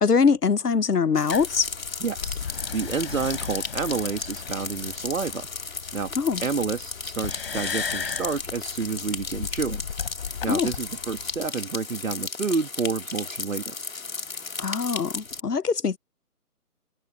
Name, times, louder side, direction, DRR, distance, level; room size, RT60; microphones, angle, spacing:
voice 1, 0.0-1.7 6.2-6.4 10.5-10.7 14.6-16.0, left 5 dB, 75° left, 1.0 m, -23 dB
sound 1, 0.5-15.1, left 40 dB or more, 15° left, 6.5 m, -61 dB
sound 2, 1.2-15.4, left 4 dB, 60° left, 2.6 m, -35 dB
sound 3, 1.3-11.5, left 6 dB, 35° left, 5.7 m, -36 dB
voice 2, 2.0-2.4 2.7-5.5 5.9-6.1 6.4-9.8 10.4-13.8, right 5 dB, 55° right, 2.0 m, -29 dB
figure-of-eight pair, 155°, 47 cm